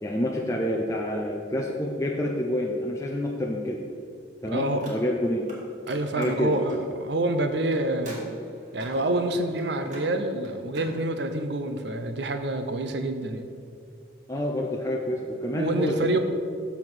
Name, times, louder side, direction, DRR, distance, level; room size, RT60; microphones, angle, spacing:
voice 1, 0.0-3.8 4.4-5.4 6.2-6.5 14.3-16.0, left 1 dB, 15° left, -1 dB, 0.5 m, -28 dB
voice 2, 4.5-5.0 5.9-8.2 8.7-13.5 15.5-16.2, right 1 dB, 65° right, 8 dB, 0.7 m, -27 dB
Car, 4.8-5.6 5.8-10.9, right 1 dB, 40° right, 1.8 m, -44 dB
6.9 x 5.7 x 6.1 m, 2.3 s
head